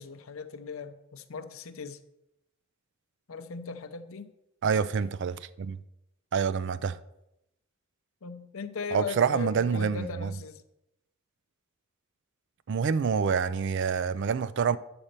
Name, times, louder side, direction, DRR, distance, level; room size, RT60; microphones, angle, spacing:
voice 1, 0.0-2.0 3.3-4.3 8.2-10.6, left 5 dB, 70° left, 0.6 m, -38 dB
voice 2, 4.6-5.8 6.3-7.0 8.9-10.3 12.7-14.8, right 6 dB, 55° right, 0.4 m, -27 dB
8.9 x 4.3 x 6.6 m
head